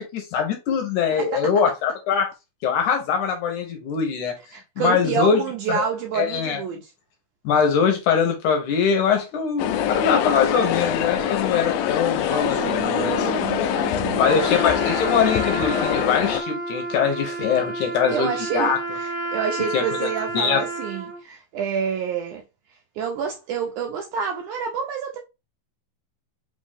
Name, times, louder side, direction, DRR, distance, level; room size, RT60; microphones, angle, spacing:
voice 1, 0.0-2.3 2.6-4.4 4.8-5.4 5.7-5.8 6.1-6.6 7.4-13.3 14.1-18.8 19.7-20.1 20.3-20.6, left 6 dB, 70° left, 2.1 m, -22 dB
voice 2, 1.1-1.5 4.5-6.9 12.2-14.5 17.8-22.4 22.9-25.2, right 7 dB, 80° right, 1.8 m, -28 dB
sound 1, 9.6-16.4, left 9 dB, 90° left, 1.7 m, -24 dB
Trumpet, 14.2-21.2, right 3 dB, 50° right, 0.8 m, -31 dB
5.4 x 2.6 x 3.5 m
omnidirectional pair, 4.1 m